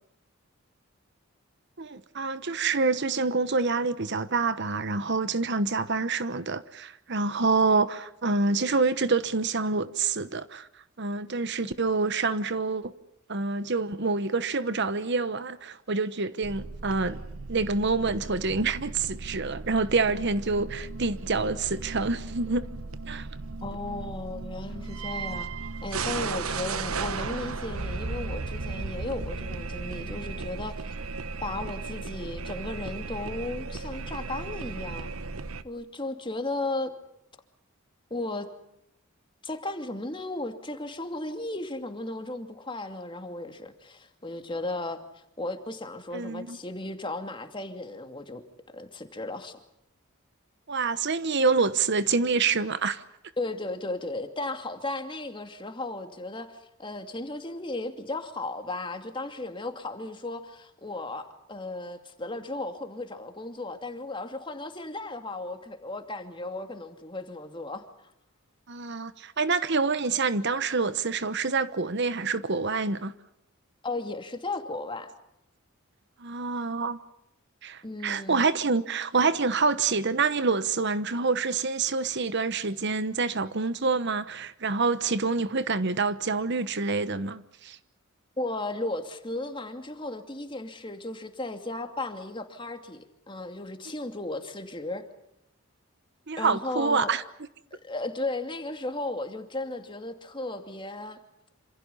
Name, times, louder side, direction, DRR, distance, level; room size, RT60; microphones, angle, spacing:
voice 1, 1.8-10.7 11.0-12.9 13.3-17.2 17.5-22.7 23.1-23.3 46.1-46.6 50.7-53.0 68.7-73.1 76.2-77.0 77.6-87.8 96.3-97.2, right 4 dB, 55° right, 1.1 m, -27 dB
sound 1, 16.4-35.6, right 4 dB, 85° right, 1.2 m, -36 dB
voice 2, 23.6-25.5 25.8-30.9 31.4-35.1 35.6-36.9 38.1-38.5 39.4-45.0 45.4-48.4 48.7-49.6 53.4-67.9 73.8-75.1 77.8-78.5 88.4-95.1 96.4-97.1 97.7-101.2, left 2 dB, 25° left, 2.6 m, -35 dB
27.5 x 27.0 x 5.6 m
head